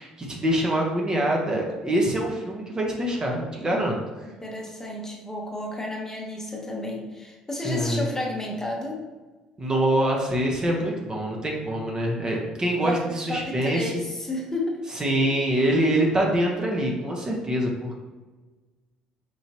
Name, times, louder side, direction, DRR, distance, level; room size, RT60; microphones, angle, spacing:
voice 1, 0.0-4.0 7.6-8.0 9.6-14.0 15.0-18.0, right 1 dB, 25° right, -1 dB, 0.9 m, -25 dB
voice 2, 4.2-9.0 12.8-13.0 13.3-14.8, left 1 dB, 15° left, -1 dB, 0.9 m, -32 dB
4.6 x 2.8 x 2.8 m, 1.3 s
hypercardioid pair, 55°, 3 cm